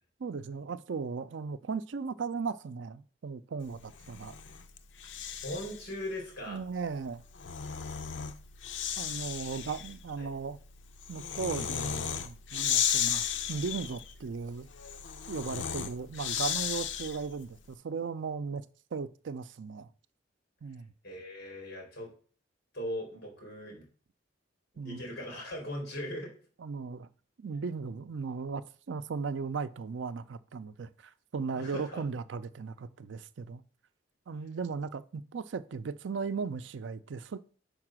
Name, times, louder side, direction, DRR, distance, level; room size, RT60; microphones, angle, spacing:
voice 1, 0.2-4.4 6.5-7.2 9.0-10.6 11.1-14.7 15.3-18.6 18.9-19.9 20.6-20.9 24.8-25.0 26.6-27.1 27.4-33.6 34.3-37.5, right 5 dB, 85° right, 0.5 m, -37 dB
Breathing, 3.9-5.9 7.1-17.4, left 8 dB, 90° left, 0.6 m, -35 dB
voice 2, 5.4-6.6 9.5-9.6 10.2-10.3 21.0-22.1 22.7-23.8 24.7-26.3 31.6-32.0, left 1 dB, 60° left, 3.6 m, -39 dB
5.3 x 4.9 x 6.0 m
head